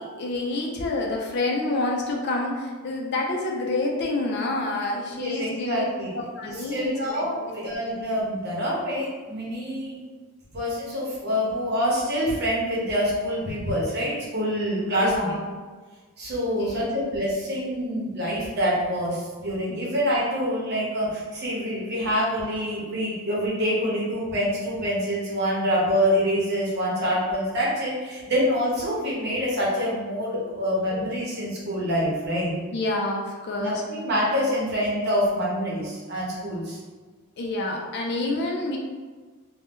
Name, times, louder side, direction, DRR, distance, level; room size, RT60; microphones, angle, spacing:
voice 1, 0.0-5.8 6.1-7.8 15.0-15.5 16.6-17.0 19.7-19.9 32.7-33.8 37.4-38.8, left 2 dB, 50° left, 0 dB, 0.4 m, -28 dB
voice 2, 5.1-6.1 6.5-9.9 10.5-15.3 16.2-32.5 33.6-36.8, equal, 45° right, -5 dB, 0.9 m, -26 dB
2.7 x 2.2 x 3.5 m, 1.4 s
head